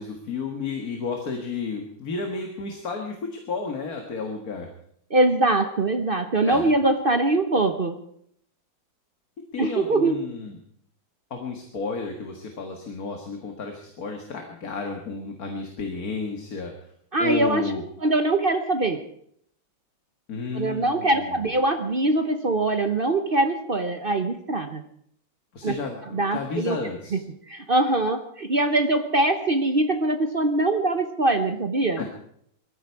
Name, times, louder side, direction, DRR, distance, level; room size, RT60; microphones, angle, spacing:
voice 1, 0.0-4.7 6.5-6.6 9.5-10.6 11.3-16.7 17.2-17.8 20.3-21.3 25.5-27.1 32.0-32.1, left 4 dB, 50° left, 3 dB, 2.1 m, -32 dB
voice 2, 5.1-8.0 9.6-10.2 17.1-17.6 18.0-19.0 20.5-24.8 25.6-25.7 26.1-26.8 27.1-27.2 27.5-32.0, right 2 dB, 40° right, 7 dB, 0.8 m, -23 dB
20.5 x 14.0 x 4.7 m, 0.67 s
omnidirectional pair, 2.2 m